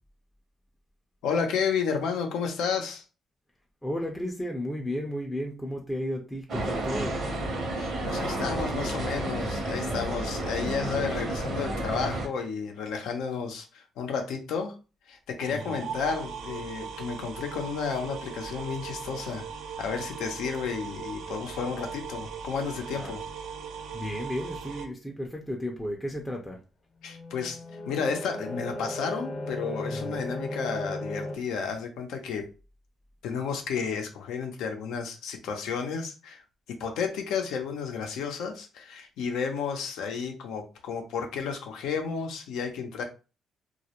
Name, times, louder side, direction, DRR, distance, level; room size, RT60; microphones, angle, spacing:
voice 1, 1.2-3.0 7.7-14.8 15.0-19.5 19.8-23.2 27.0-32.5 33.2-43.0, left 6 dB, 85° left, 4 dB, 0.5 m, -32 dB
voice 2, 3.8-7.2 15.5-15.9 23.0-23.1 23.9-26.6 29.9-30.3, equal, 10° left, 0 dB, 0.4 m, -34 dB
sound 1, 6.5-12.3, right 1 dB, 65° right, 0.8 m, -31 dB
sound 2, 15.4-24.9, right 6 dB, 80° right, 0.4 m, -39 dB
sound 3, 27.0-31.4, left 1 dB, 50° left, 0.7 m, -36 dB
2.3 x 2.0 x 2.9 m, 0.32 s
cardioid pair, 90°, 0 cm